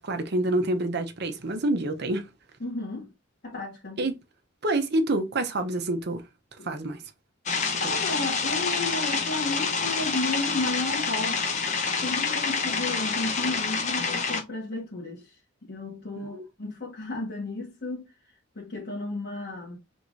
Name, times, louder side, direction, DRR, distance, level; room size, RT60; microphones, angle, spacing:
voice 1, 0.0-2.3 4.0-4.2 4.6-6.2 6.6-7.0 7.8-7.9 16.2-16.4, right 1 dB, 60° right, 0.8 m, -27 dB
voice 2, 2.6-3.1 3.4-4.0 6.6-6.7 7.8-11.4 12.0-15.3 15.7-18.0 18.5-19.8, left 2 dB, 55° left, 1.5 m, -33 dB
sound 1, 7.5-14.4, left 5 dB, 40° left, 1.1 m, -27 dB
4.8 x 3.5 x 2.6 m
head